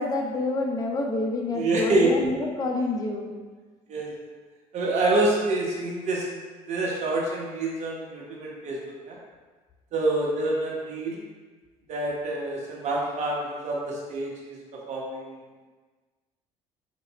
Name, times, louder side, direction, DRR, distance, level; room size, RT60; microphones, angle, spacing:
voice 1, 0.0-3.4, left 2 dB, 25° left, 0 dB, 0.7 m, -28 dB
voice 2, 1.5-2.1 3.9-4.3 4.7-6.4 6.7-8.8 9.1-9.2 9.9-11.2 11.9-14.6 14.9-15.4, right 2 dB, 50° right, -3 dB, 1.1 m, -27 dB
4.5 x 2.5 x 3.0 m, 1.4 s
supercardioid pair, 85°, 14 cm